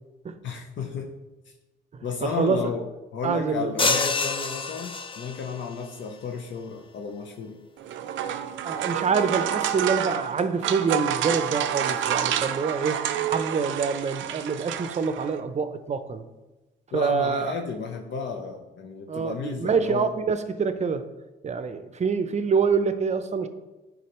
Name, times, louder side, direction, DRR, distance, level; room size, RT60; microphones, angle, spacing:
voice 1, 0.4-1.1 2.0-2.9 3.1-7.6 16.9-20.1, left 5 dB, 65° left, 2 dB, 0.7 m, -33 dB
voice 2, 1.9-2.7 3.2-3.7 8.6-13.0 13.3-16.2 16.9-17.6 19.1-21.0 21.4-23.5, right 5 dB, 35° right, 10 dB, 0.6 m, -26 dB
sound 1, 3.8-5.6, left 3 dB, 25° left, 0.5 m, -26 dB
sound 2, 7.8-15.4, right 10 dB, 75° right, 0.5 m, -29 dB
9.3 x 4.0 x 3.0 m, 1.1 s
cardioid pair, 90°, 20 cm